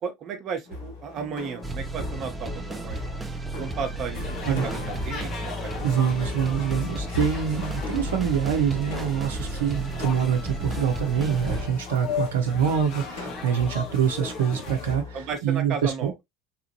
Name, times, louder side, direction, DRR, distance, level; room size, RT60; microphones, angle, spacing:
voice 1, 0.0-3.1 3.6-5.7 15.1-16.1, right 6 dB, 45° right, 0.9 m, -34 dB
sound 1, 0.7-15.4, left 2 dB, 65° left, 1.2 m, -39 dB
sound 2, 1.6-11.7, right 1 dB, 15° right, 0.5 m, -34 dB
sound 3, 4.1-15.0, left 5 dB, 45° left, 1.1 m, -37 dB
voice 2, 5.8-16.1, right 8 dB, 70° right, 0.7 m, -25 dB
3.3 x 2.5 x 2.9 m
figure-of-eight pair, 70°, 0 cm